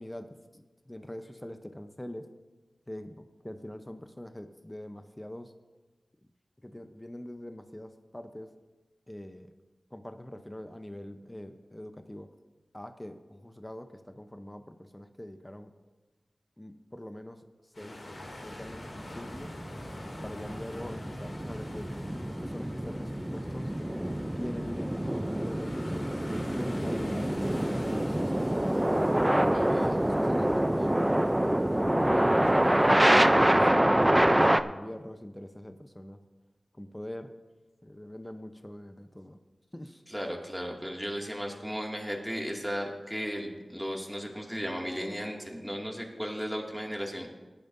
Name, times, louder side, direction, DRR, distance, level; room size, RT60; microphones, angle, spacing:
voice 1, 0.0-2.3 2.9-5.5 6.6-8.6 9.1-9.5 9.9-12.3 12.7-15.7 16.6-17.4 17.8-18.0 18.4-19.5 20.2-21.9 22.3-23.7 24.4-26.1 26.5-28.7 29.5-32.8 33.2-36.2 36.7-37.3 37.8-39.4 39.7-40.0, left 1 dB, 15° left, 7 dB, 0.8 m, -43 dB
sound 1, 17.7-33.1, left 1 dB, 70° left, 2.6 m, -44 dB
sound 2, 18.5-34.6, right 1 dB, 15° right, 0.5 m, -26 dB
voice 2, 29.5-29.9 40.1-47.3, equal, ahead, 0 dB, 2.3 m, -35 dB
17.5 x 10.5 x 2.7 m, 1.2 s
cardioid pair, 45°, 0 cm